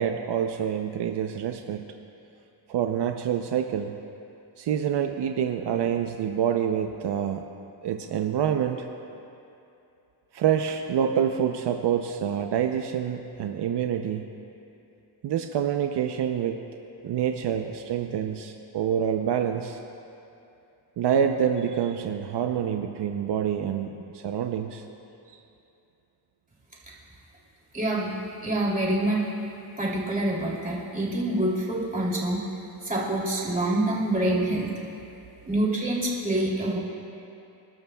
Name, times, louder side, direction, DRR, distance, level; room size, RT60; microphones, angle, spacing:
voice 1, 0.0-1.9 2.7-3.9 4.6-7.4 7.8-8.8 10.3-14.3 15.2-16.6 17.0-19.8 21.0-24.8 25.3-25.4, right 8 dB, 75° right, 5 dB, 0.7 m, -27 dB
voice 2, 27.7-28.1 28.4-29.3 29.8-32.4 32.8-34.7 35.4-36.8, right 1 dB, 20° right, -5 dB, 2.9 m, -26 dB
27.5 x 12.5 x 2.3 m, 2.7 s
wide cardioid pair, 140°, 42 cm